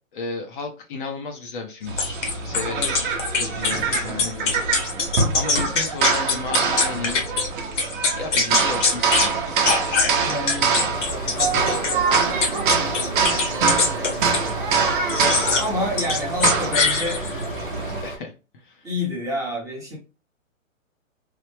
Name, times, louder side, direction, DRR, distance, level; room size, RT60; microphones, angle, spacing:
voice 1, 0.1-2.2 2.4-3.1 3.4-7.2 8.1-9.7 10.6-11.0 18.0-18.9, left 4 dB, 40° left, 3 dB, 0.6 m, -34 dB
sound 1, 1.9-18.0, right 5 dB, 40° right, 0.8 m, -24 dB
sound 2, 2.0-7.5 7.8-9.3 9.6-14.5 15.1-15.7 16.0-17.4, left 4 dB, 60° left, 1.2 m, -23 dB
voice 2, 3.7-4.2 10.2-10.8 11.1-12.5 15.6-17.2 18.8-20.0, left 1 dB, 10° right, -4 dB, 0.8 m, -30 dB
sound 3, 10.9-18.2, equal, 80° left, 1.4 m, -34 dB
3.2 x 2.0 x 3.2 m, 0.31 s
hypercardioid pair, 145°, 40 cm